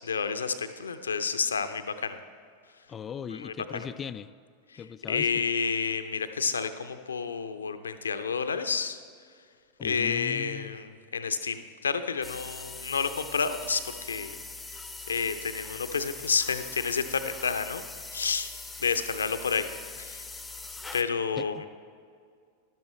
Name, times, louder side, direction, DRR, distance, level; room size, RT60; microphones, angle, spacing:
voice 1, 0.0-2.2 3.3-3.9 4.7-4.8 5.1-9.0 9.8-14.3 15.1-17.8 18.1-18.5 18.8-19.7 20.0-20.2 20.9-21.6, left 5 dB, 70° left, 10 dB, 0.6 m, -30 dB
voice 2, 2.9-4.3 4.8-5.5 9.8-10.8 21.4-21.7, left 7 dB, 25° left, 15 dB, 0.3 m, -39 dB
sound 1, 12.2-21.0, left 3 dB, 5° left, 0.7 m, -42 dB
13.0 x 12.0 x 3.2 m, 2.1 s
figure-of-eight pair, 90°, 0 cm